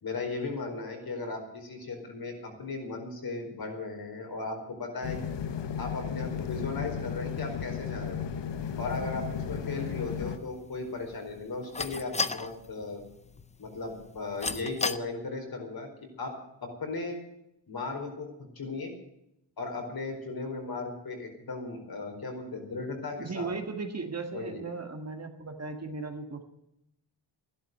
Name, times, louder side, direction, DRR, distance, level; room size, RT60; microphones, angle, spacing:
voice 1, 0.0-5.2 5.8-8.2 8.8-13.0 13.6-15.9 16.2-17.2 17.7-18.9 19.6-23.5 24.3-24.6, left 3 dB, 55° left, 3 dB, 4.7 m, -36 dB
sound 1, 5.0-10.4, left 7 dB, 70° left, 1.2 m, -34 dB
sound 2, 8.5-15.0, left 3 dB, 15° left, 0.5 m, -38 dB
voice 2, 23.2-26.4, right 4 dB, 35° right, 5 dB, 1.9 m, -36 dB
15.5 x 11.5 x 7.8 m, 0.80 s
wide cardioid pair, 175°, 44 cm